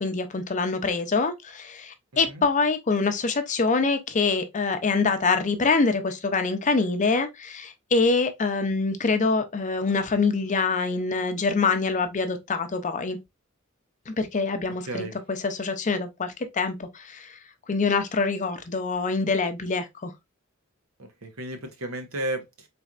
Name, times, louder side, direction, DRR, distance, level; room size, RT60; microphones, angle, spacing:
voice 1, 0.0-13.2 14.1-17.4 17.7-20.1, left 4 dB, 35° left, 0.6 m, -25 dB
voice 2, 14.9-15.2 21.0-22.7, right 1 dB, 80° right, 1.1 m, -33 dB
4.2 x 3.4 x 2.4 m
head